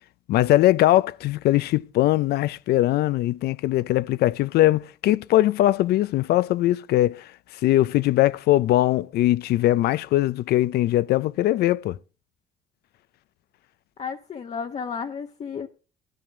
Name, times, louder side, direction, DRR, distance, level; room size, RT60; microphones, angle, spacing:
voice 1, 0.3-12.0, left 15 dB, 70° left, 0.5 m, -21 dB
voice 2, 14.0-15.7, left 6 dB, 40° left, 1.1 m, -32 dB
13.0 x 11.0 x 3.7 m
cardioid pair, 110°, 17 cm